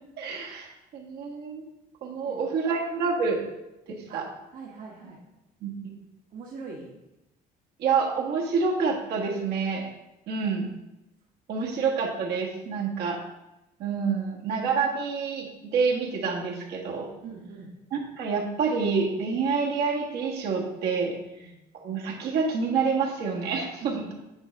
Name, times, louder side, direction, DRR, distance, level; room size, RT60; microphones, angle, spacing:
voice 1, 0.2-1.6 2.0-3.4 4.1-4.3 5.6-5.7 7.8-9.9 10.3-10.7 11.5-13.2 13.8-17.1 17.9-21.2 21.8-24.1, right 5 dB, 75° right, -1 dB, 1.5 m, -27 dB
voice 2, 2.2-2.7 4.1-4.2 4.5-5.2 6.3-6.9 12.8-12.9 17.2-17.7 21.3-21.6 23.8-24.0, right 4 dB, 55° right, -2 dB, 1.1 m, -42 dB
8.9 x 3.3 x 5.2 m, 0.95 s
cardioid pair, 110°, 17 cm